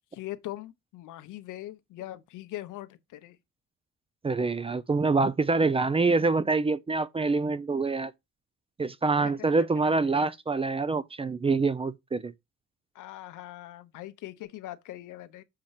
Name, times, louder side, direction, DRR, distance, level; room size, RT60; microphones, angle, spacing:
voice 1, 0.1-3.4 9.2-9.5 12.9-15.4, left 14 dB, 85° left, 0.8 m, -41 dB
voice 2, 4.2-8.1 8.8-12.3, right 3 dB, 20° right, 0.4 m, -26 dB
6.6 x 2.9 x 5.6 m
cardioid pair, 90°, 30 cm